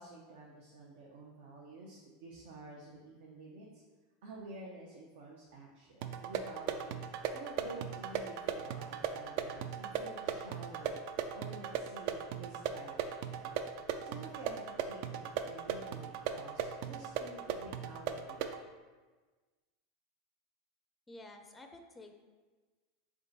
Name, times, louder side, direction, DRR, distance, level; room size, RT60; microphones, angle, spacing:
voice 1, 0.0-3.8 4.2-7.0 7.3-11.0 11.3-13.6 14.0-18.5, right 2 dB, 80° right, -2 dB, 0.7 m, -50 dB
sound 1, 6.0-18.6, right 8 dB, 65° right, 0.3 m, -38 dB
voice 2, 21.1-22.2, left 2 dB, 15° left, 5 dB, 0.4 m, -51 dB
3.7 x 3.5 x 3.9 m, 1.3 s
supercardioid pair, 120°, 0 cm